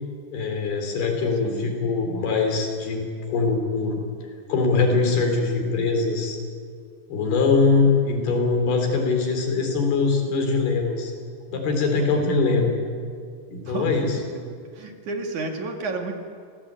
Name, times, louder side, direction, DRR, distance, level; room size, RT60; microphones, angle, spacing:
voice 1, 0.3-4.0 4.5-6.4 7.1-11.1 11.5-12.7 13.5-14.1, left 4 dB, 85° left, 3 dB, 5.7 m, -22 dB
voice 2, 11.9-12.3 13.6-14.4 14.7-16.1, right 3 dB, 55° right, 4 dB, 3.3 m, -32 dB
29.5 x 17.5 x 8.9 m, 2.2 s
omnidirectional pair, 4.4 m